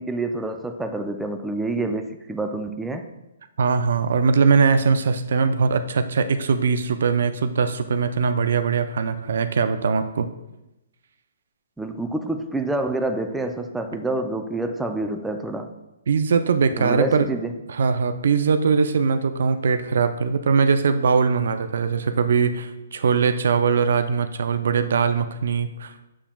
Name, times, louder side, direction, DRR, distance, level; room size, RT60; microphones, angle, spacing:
voice 1, 0.0-3.1 11.8-15.7 16.8-17.5, right 2 dB, 5° right, 5 dB, 0.4 m, -27 dB
voice 2, 3.6-10.3 16.1-17.3 17.7-26.1, right 5 dB, 70° right, 10 dB, 0.5 m, -21 dB
7.2 x 6.9 x 2.3 m, 0.94 s
hypercardioid pair, 145°, 0 cm